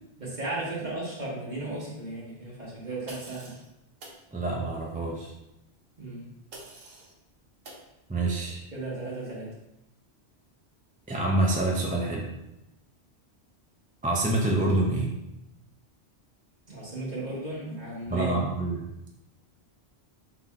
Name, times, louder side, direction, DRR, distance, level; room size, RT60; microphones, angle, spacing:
voice 1, 0.2-3.6 6.0-6.3 8.7-9.5 16.7-18.4, right 2 dB, 45° right, -6 dB, 1.6 m, -35 dB
sound 1, 3.1-3.7 4.0-4.2 6.5-7.1 7.6-7.9, right 2 dB, 60° right, 1.1 m, -46 dB
voice 2, 4.3-5.3 8.1-8.6 11.1-12.3 14.0-15.1 18.1-18.8, right 2 dB, 15° right, -1 dB, 0.3 m, -26 dB
3.9 x 2.8 x 4.8 m, 0.89 s
omnidirectional pair, 1.1 m